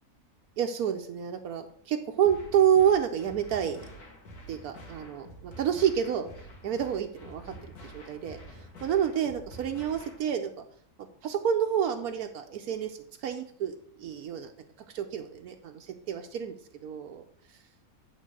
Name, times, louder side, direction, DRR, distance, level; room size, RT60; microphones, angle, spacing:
voice 1, 0.6-3.8 4.5-6.3 6.6-10.6 11.2-14.5 14.9-17.2, right 9 dB, 75° right, 5 dB, 1.1 m, -29 dB
sound 1, 2.3-10.3, equal, 80° left, 2.2 m, -48 dB
9.3 x 4.0 x 6.4 m, 0.62 s
omnidirectional pair, 1.6 m